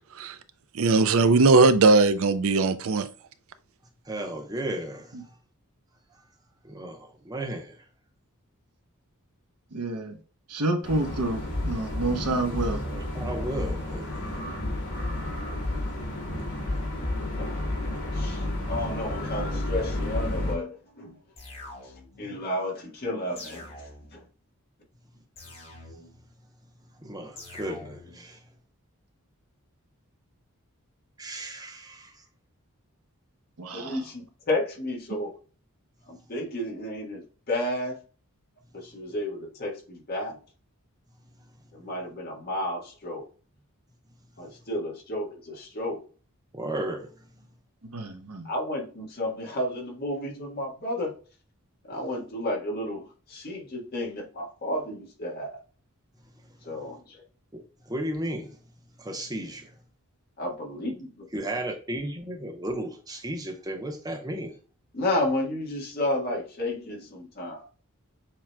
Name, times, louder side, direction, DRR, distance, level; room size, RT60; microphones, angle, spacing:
voice 1, 0.7-3.1, right 3 dB, 65° right, 0.5 m, -19 dB
voice 2, 4.0-5.4 6.6-7.8 12.8-14.3 27.0-28.4 31.2-32.2 46.5-47.3 57.5-57.6 57.9-58.6 59.0-59.7 61.3-64.6, right 1 dB, 15° right, 0.8 m, -34 dB
voice 3, 9.7-10.2 10.5-12.8 33.6-34.0 47.9-48.5, right 2 dB, 90° right, 1.0 m, -29 dB
sound 1, 10.8-20.5, left 1 dB, 75° left, 1.9 m, -31 dB
voice 4, 18.1-21.2 21.8-24.2 33.7-35.4 36.1-38.0 38.7-40.4 41.7-43.3 44.4-46.0 48.4-51.2 51.9-55.6 56.6-57.2 60.4-61.1 64.9-67.7, left 1 dB, 45° left, 1.4 m, -32 dB
sound 2, 21.4-22.3 23.4-24.3 25.4-26.3 27.4-28.2, left 2 dB, 30° left, 1.6 m, -45 dB
7.1 x 2.9 x 2.2 m
head